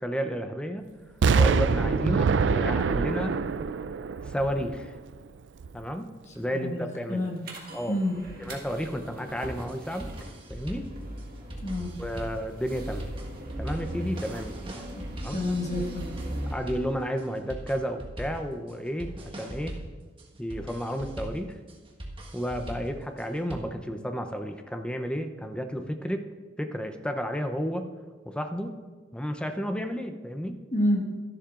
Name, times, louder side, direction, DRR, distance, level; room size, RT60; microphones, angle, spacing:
voice 1, 0.0-0.8 1.4-3.4 4.3-4.9 5.7-6.1 6.4-7.3 7.7-8.0 8.4-10.1 10.5-10.9 12.0-13.1 13.6-14.7 15.2-15.4 16.5-19.8 20.4-21.6 22.3-26.3 26.6-27.9 28.3-28.7 29.1-30.6, equal, 5° left, 6 dB, 0.6 m, -32 dB
Explosion, 1.2-5.1 5.6-5.7, right 5 dB, 65° right, 0.4 m, -25 dB
voice 2, 6.3-7.4 7.9-8.2 11.6-11.9 14.9-15.0 15.3-16.1 30.7-31.2, left 1 dB, 40° left, 1 dB, 1.6 m, -29 dB
sound 1, 7.4-16.6, right 1 dB, 50° right, 1.6 m, -39 dB
sound 2, 9.7-23.6, right 1 dB, 30° right, 1.4 m, -41 dB
13.0 x 11.5 x 2.5 m, 1.4 s
head